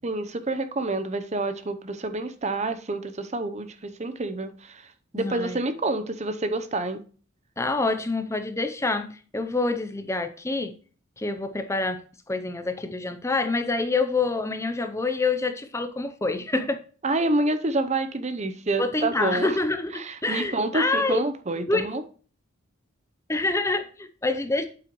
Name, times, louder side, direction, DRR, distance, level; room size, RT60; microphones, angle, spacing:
voice 1, 0.0-4.9 5.1-7.0 17.0-19.6 20.0-22.0, right 2 dB, 35° right, 0.7 m, -28 dB
voice 2, 5.1-5.6 7.6-10.7 11.2-12.0 12.3-16.8 18.8-21.2 21.7-22.0 23.3-24.7, left 3 dB, 15° left, 0.6 m, -27 dB
8.8 x 7.9 x 3.1 m
head